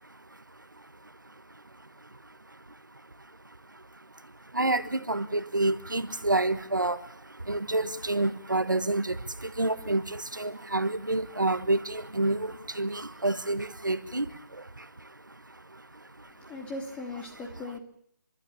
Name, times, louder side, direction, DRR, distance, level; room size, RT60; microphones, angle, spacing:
voice 1, 0.0-16.5, right 2 dB, 90° right, 1.4 m, -31 dB
voice 2, 16.3-17.8, left 2 dB, 10° left, 2.9 m, -39 dB
30.0 x 12.5 x 8.7 m
figure-of-eight pair, 150°, 10 cm